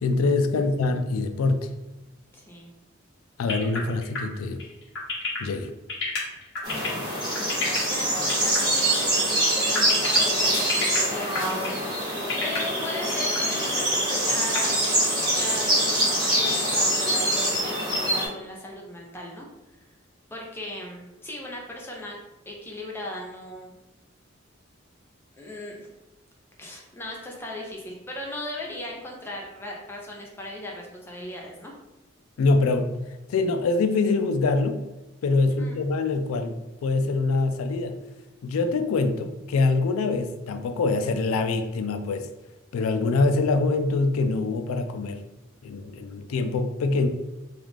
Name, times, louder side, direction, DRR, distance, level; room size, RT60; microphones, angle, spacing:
voice 1, 0.0-1.7 3.4-4.7 5.4-5.7 32.4-32.9 33.3-34.8 35.2-37.9 38.4-42.3 42.7-45.2 45.6-47.1, left 3 dB, 90° left, 8 dB, 0.3 m, -24 dB
voice 2, 0.5-0.9 2.3-2.7 7.6-14.7 15.3-19.5 19.8-19.9 20.3-22.2 22.5-23.7 25.4-25.9 26.6-31.7 35.6-35.8, left 1 dB, 10° left, -2 dB, 0.5 m, -38 dB
sound 1, 3.5-7.8 8.3-8.6 8.8-9.0 9.4-10.2 10.7-11.8 12.2-12.6 13.1-13.4 13.8-13.9 14.1-14.9, left 4 dB, 55° left, 1.3 m, -31 dB
sound 2, 6.6-18.3, right 1 dB, 20° right, 1.0 m, -24 dB
3.1 x 2.4 x 3.5 m, 1.0 s
head